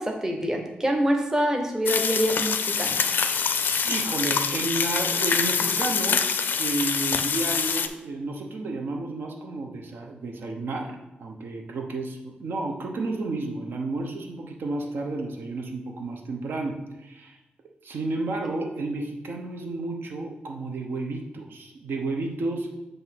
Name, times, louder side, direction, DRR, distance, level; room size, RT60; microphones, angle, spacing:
voice 1, 0.0-3.0, equal, 15° right, 3 dB, 0.7 m, -25 dB
sound 1, 1.9-7.9, left 6 dB, 65° left, 0.4 m, -25 dB
voice 2, 3.8-6.2 6.6-17.4 17.8-22.7, right 2 dB, 80° right, 2 dB, 0.8 m, -31 dB
7.8 x 2.6 x 5.8 m, 0.99 s
wide cardioid pair, 170°, 4 cm